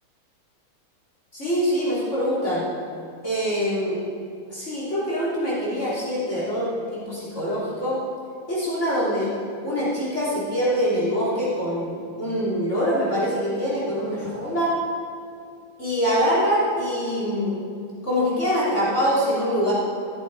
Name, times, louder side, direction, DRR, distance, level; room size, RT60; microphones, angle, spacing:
voice 1, 1.3-2.6 3.2-4.0 4.5-8.0 8.5-9.3 9.6-14.7 15.8-17.6 18.0-19.7, equal, 30° left, -8 dB, 3.8 m, -24 dB
14.0 x 13.0 x 4.8 m, 2.4 s
omnidirectional pair, 2.4 m